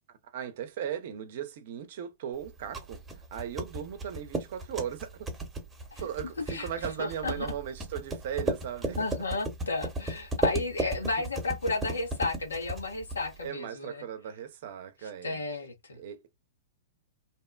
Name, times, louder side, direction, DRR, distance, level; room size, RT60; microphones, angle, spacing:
voice 1, 0.2-3.0 3.3-5.3 6.0-9.0 13.4-15.4 15.9-16.2, right 9 dB, 60° right, 0.7 m, -37 dB
sound 1, 2.4-13.5, right 2 dB, 15° right, 0.9 m, -35 dB
voice 2, 6.4-7.5 8.4-8.5 9.0-14.0 15.0-16.0, left 3 dB, 85° left, 1.0 m, -33 dB
2.7 x 2.1 x 2.3 m
hypercardioid pair, 105°, 0 cm